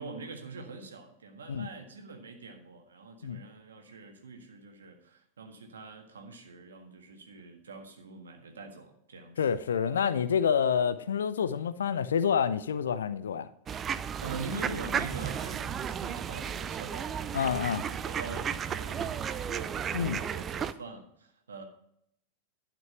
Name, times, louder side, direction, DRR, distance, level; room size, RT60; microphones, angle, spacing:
voice 1, 0.0-9.4 14.2-21.6, right 3 dB, 70° right, 1.6 m, -44 dB
voice 2, 9.4-13.5 17.3-17.9 19.9-20.2, left 7 dB, 65° left, 0.5 m, -28 dB
sound 1, 13.7-20.7, right 8 dB, 25° right, 0.5 m, -34 dB
12.0 x 6.0 x 5.9 m
figure-of-eight pair, 90°, 0 cm